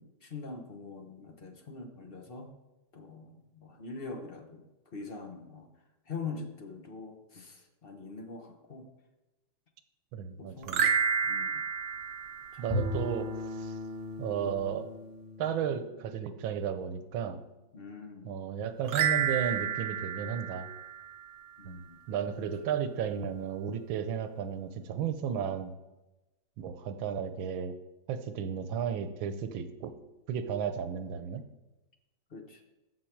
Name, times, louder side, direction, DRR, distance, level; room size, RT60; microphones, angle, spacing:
voice 1, 0.0-2.5 2.9-4.6 4.9-5.7 6.1-8.9 10.4-10.8 11.2-11.6 12.5-12.8 17.7-18.3 21.6-22.0 22.4-22.5 32.3-32.6, left 4 dB, 40° left, 4 dB, 0.9 m, -43 dB
voice 2, 10.1-10.8 12.6-13.8 14.2-14.9 15.4-17.4 18.2-20.7 21.6-25.7 26.6-27.7 28.1-29.9 30.3-31.4, right 8 dB, 90° right, 10 dB, 1.6 m, -34 dB
sound 1, 10.6-13.1 18.9-21.5, right 7 dB, 75° right, 1.4 m, -31 dB
Bowed string instrument, 12.7-16.9, left 2 dB, 25° right, 0.9 m, -38 dB
14.5 x 5.9 x 4.6 m, 1.0 s
omnidirectional pair, 2.1 m